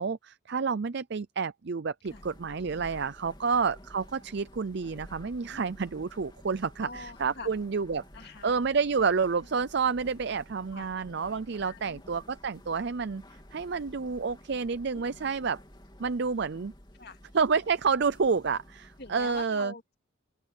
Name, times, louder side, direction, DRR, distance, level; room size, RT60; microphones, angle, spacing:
voice 1, 0.0-8.0 8.4-13.2 13.5-15.6 16.0-16.7 17.3-19.7, right 5 dB, 55° right, 0.5 m, -29 dB
sound 1, 2.0-19.4, left 1 dB, 20° left, 3.3 m, -52 dB
voice 2, 6.8-7.5 8.1-8.6 10.7-10.9 11.6-12.0 14.9-15.4 16.9-17.2 19.0-20.0, left 3 dB, 55° left, 2.3 m, -45 dB
open air
head